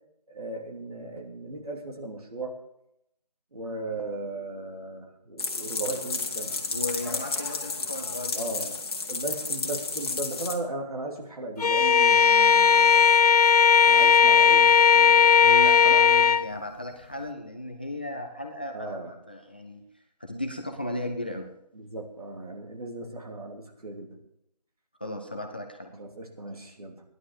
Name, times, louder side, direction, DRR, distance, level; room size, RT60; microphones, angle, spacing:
voice 1, 0.3-2.6 3.5-6.5 8.3-8.7 9.1-13.2 13.8-15.5 18.7-19.1 21.7-24.2 25.9-27.0, right 2 dB, 65° right, 1 dB, 3.1 m, -37 dB
sound 1, 5.4-10.6, left 4 dB, 40° left, 1.8 m, -32 dB
voice 2, 6.7-8.8 15.4-19.8 20.2-21.5 25.0-25.9, left 1 dB, 15° left, 3 dB, 0.5 m, -35 dB
Bowed string instrument, 11.6-16.5, left 7 dB, 70° left, 0.6 m, -17 dB
15.0 x 11.0 x 4.8 m, 0.79 s
figure-of-eight pair, 160°, 21 cm